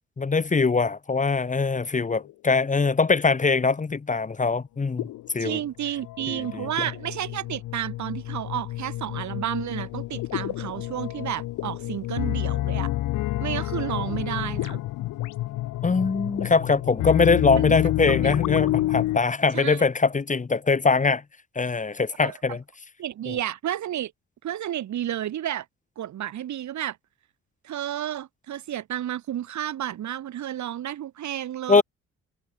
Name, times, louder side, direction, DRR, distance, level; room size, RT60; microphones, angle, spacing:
voice 1, 0.2-5.1 5.3-5.6 6.3-6.9 15.8-21.2 21.5-22.6 23.3-23.4 31.7-31.8, left 4 dB, 25° left, 1.4 m, -22 dB
sound 1, 2.1-2.3 5.0-19.2, left 16 dB, 85° left, 2.3 m, -29 dB
voice 2, 5.4-12.9 13.4-14.8 17.5-17.8 19.5-19.8 22.2-22.3 23.0-24.1 24.4-25.6 26.0-27.0 27.6-31.8, right 11 dB, 70° right, 2.8 m, -31 dB
cardioid pair, 90°, 30 cm